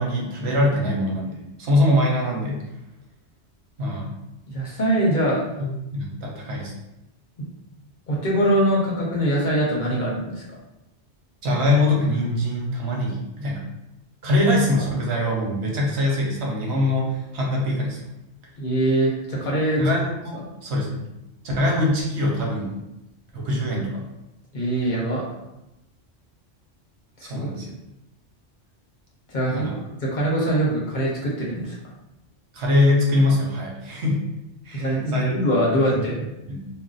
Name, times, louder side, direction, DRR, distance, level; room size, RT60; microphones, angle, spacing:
voice 1, 0.0-2.6 3.8-4.1 5.9-6.7 11.4-13.6 14.2-18.0 19.8-21.0 21.6-22.8 23.3-24.0 27.2-27.7 29.5-29.8 32.5-34.2 34.6-35.3 35.9-36.0 36.5-36.7, left 1 dB, 75° right, -2 dB, 1.0 m, -23 dB
voice 2, 4.5-5.4 7.4-7.5 8.1-10.4 18.6-19.8 24.5-25.3 27.2-27.7 29.3-31.8 34.7-36.2, right 1 dB, 50° left, -4 dB, 0.8 m, -23 dB
2.5 x 2.0 x 3.8 m, 0.92 s
omnidirectional pair, 1.1 m